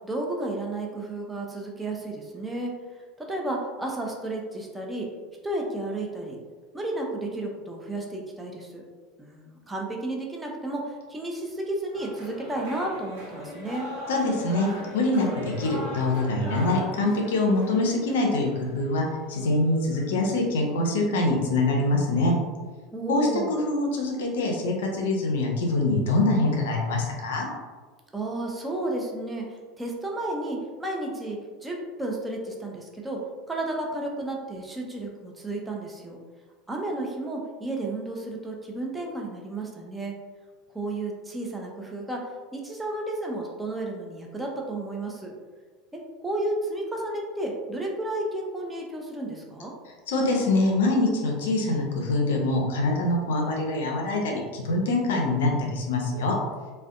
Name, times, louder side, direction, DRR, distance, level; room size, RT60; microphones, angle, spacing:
voice 1, 0.0-2.7 3.2-5.1 5.4-6.4 6.7-8.8 9.3-13.9 22.9-23.6 28.1-33.2 33.5-36.2 36.7-40.1 40.7-42.2 42.5-45.3 45.9-49.7, right 2 dB, 10° right, -1 dB, 0.4 m, -32 dB
sound 1, 11.9-20.4, equal, 65° right, 0.8 m, -40 dB
voice 2, 14.1-14.7 14.9-22.3 23.1-27.5 50.1-56.4, left 2 dB, 65° left, 0 dB, 0.4 m, -24 dB
2.4 x 2.1 x 2.4 m, 1.4 s
figure-of-eight pair, 75°, 0 cm